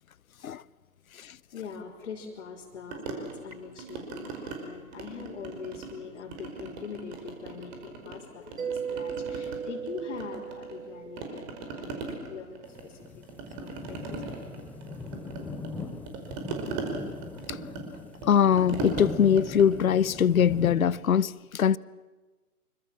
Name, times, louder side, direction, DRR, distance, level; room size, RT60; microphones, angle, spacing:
voice 1, 1.5-13.2 13.6-14.3, left 5 dB, 50° left, 4.3 m, -42 dB
sound 1, 2.9-4.6 4.9-6.0 6.3-8.2 8.5-10.9 11.2-21.0, right 4 dB, 30° right, 5.0 m, -39 dB
Mallet percussion, 8.6-12.0, right 7 dB, 60° right, 2.5 m, -37 dB
sound 2, 12.7-20.8, left 4 dB, 5° left, 1.0 m, -40 dB
voice 2, 18.2-21.8, left 8 dB, 65° left, 0.8 m, -22 dB
26.5 x 24.5 x 7.4 m
figure-of-eight pair, 135°, 46 cm